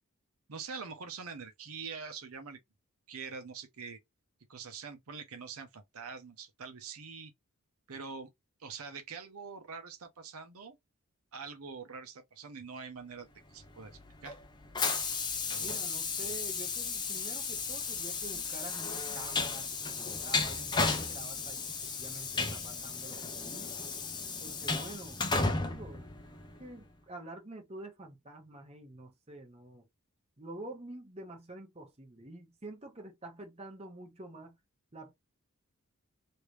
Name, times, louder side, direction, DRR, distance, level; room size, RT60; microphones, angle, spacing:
voice 1, 0.5-2.6 3.1-4.0 4.5-7.3 7.9-8.3 8.6-10.8 11.3-13.9 14.2-14.4 15.4-15.8 16.2-16.4, right 5 dB, 80° right, 0.8 m, -44 dB
Train, 13.6-26.8, left 4 dB, 20° left, 0.5 m, -34 dB
voice 2, 15.6-23.9 24.4-25.2 25.6-26.1 26.6-29.9 30.4-34.6 34.9-35.1, right 2 dB, 30° right, 1.0 m, -48 dB
3.2 x 2.7 x 3.1 m
head